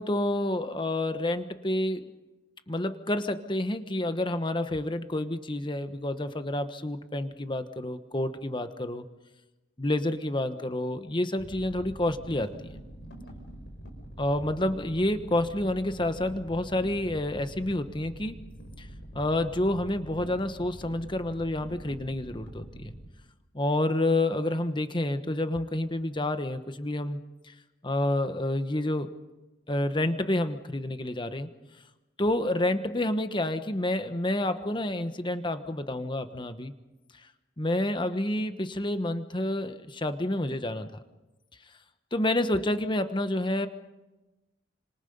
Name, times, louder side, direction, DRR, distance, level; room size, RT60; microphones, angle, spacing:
voice 1, 0.0-2.1 2.7-9.1 9.8-12.7 14.2-18.4 18.8-18.9 19.1-22.9 23.5-27.2 27.5-27.6 27.8-29.1 29.7-31.5 32.2-36.7 37.6-40.9 42.1-43.7, left 1 dB, 25° left, 10 dB, 1.2 m, -29 dB
sound 1, 11.4-23.1, right 1 dB, 75° left, 5.4 m, -45 dB
30.0 x 26.5 x 5.4 m, 1.1 s
head